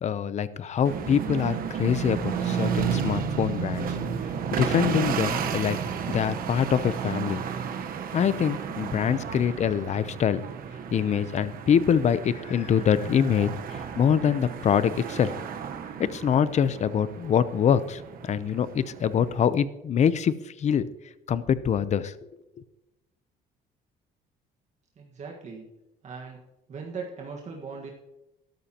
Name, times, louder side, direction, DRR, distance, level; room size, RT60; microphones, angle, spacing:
voice 1, 0.0-3.9 4.5-5.8 6.1-7.4 8.1-10.4 10.9-15.3 16.0-20.9 21.3-22.1, left 8 dB, 45° left, 15 dB, 0.7 m, -24 dB
sound 1, 0.8-19.5, right 7 dB, 60° right, 1.1 m, -32 dB
voice 2, 25.0-25.7 26.0-26.4 26.7-27.9, right 5 dB, 45° right, 0 dB, 1.6 m, -39 dB
13.0 x 12.5 x 2.9 m, 0.94 s
cardioid pair, 110°, 17 cm